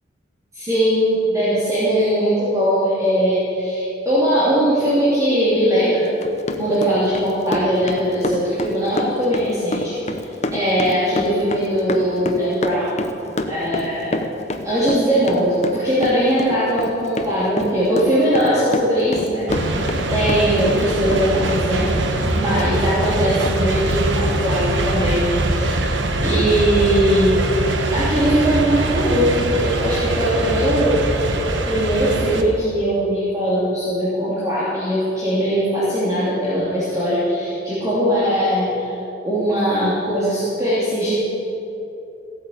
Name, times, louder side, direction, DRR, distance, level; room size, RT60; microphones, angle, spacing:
voice 1, 0.5-6.1 6.6-10.0 10.5-13.0 13.5-14.3 14.6-19.8 20.1-25.3 25.5-25.9 26.2-27.4 27.9-31.0 31.6-38.9 39.2-41.2, equal, 20° right, -10 dB, 3.0 m, -20 dB
Run, 6.0-20.9 21.1-22.7 23.0-23.1 23.4-23.6 23.9-24.0, left 2 dB, 40° left, 1.0 m, -27 dB
sound 1, 19.5-32.4, right 2 dB, 75° right, 1.2 m, -22 dB
16.0 x 8.9 x 8.0 m, 2.9 s
head